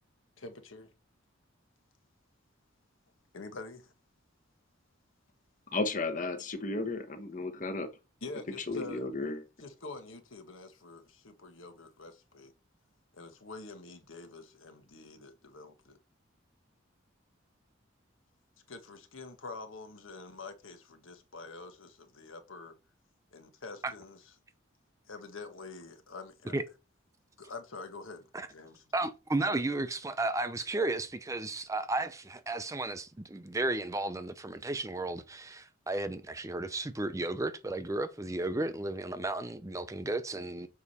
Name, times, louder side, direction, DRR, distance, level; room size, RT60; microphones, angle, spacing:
voice 1, 0.4-0.9 3.3-3.9 8.2-9.0 9.6-12.5 13.1-16.0 18.7-22.7 23.3-24.3 25.1-26.6 27.4-28.8, left 3 dB, 85° left, 1.4 m, -46 dB
voice 2, 5.7-7.9 8.7-9.4, left 2 dB, 40° left, 1.1 m, -34 dB
voice 3, 28.9-40.7, right 2 dB, 15° right, 0.5 m, -33 dB
7.1 x 4.8 x 4.2 m
head